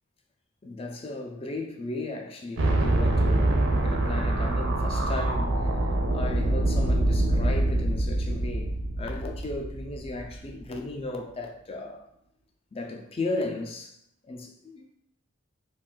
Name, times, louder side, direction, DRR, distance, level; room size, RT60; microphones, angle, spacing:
voice 1, 0.6-8.7 9.0-12.1 12.7-14.0 14.2-14.9, left 2 dB, 30° left, 0.4 m, -35 dB
sound 1, 2.6-10.6, right 1 dB, 60° right, 0.5 m, -25 dB
2.5 x 2.3 x 3.7 m
head